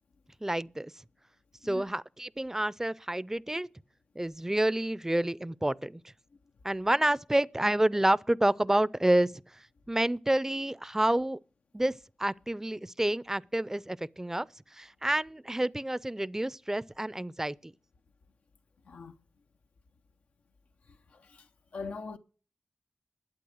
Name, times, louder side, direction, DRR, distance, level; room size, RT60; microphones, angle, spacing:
voice 1, 0.4-0.9 1.6-3.7 4.2-6.0 6.6-9.3 9.9-11.4 11.7-14.5 14.7-17.7, right 1 dB, 15° right, 0.5 m, -29 dB
voice 2, 21.1-22.2, left 4 dB, 90° left, 0.6 m, -42 dB
11.5 x 8.3 x 6.4 m
cardioid pair, 40°, 3 cm